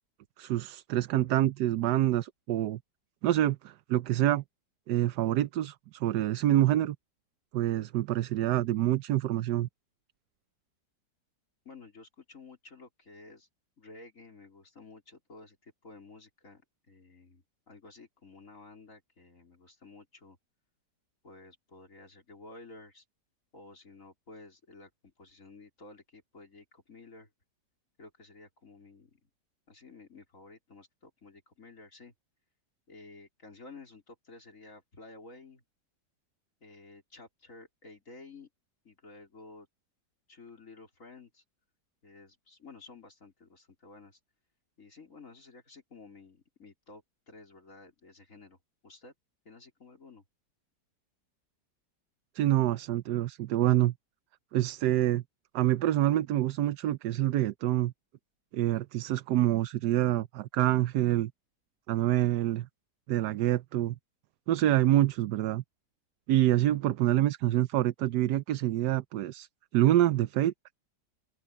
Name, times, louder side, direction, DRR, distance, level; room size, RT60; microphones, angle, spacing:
voice 1, 0.4-2.8 3.2-4.4 4.9-7.0 7.5-9.7 52.3-53.9 54.5-55.2 55.5-57.9 58.5-61.3 61.9-62.7 63.1-63.9 64.5-65.6 66.3-69.5 69.7-70.5, right 13 dB, 75° right, 1.2 m, -26 dB
voice 2, 11.6-13.5 13.8-16.6 16.9-20.4 21.2-23.0 23.5-27.3 28.0-29.3 29.7-32.1 32.9-35.6 36.6-38.5 38.8-39.7 40.3-41.4 42.0-44.2 44.8-48.6 48.8-49.1 49.4-50.2, left 3 dB, 50° left, 4.3 m, -52 dB
open air
omnidirectional pair, 1.8 m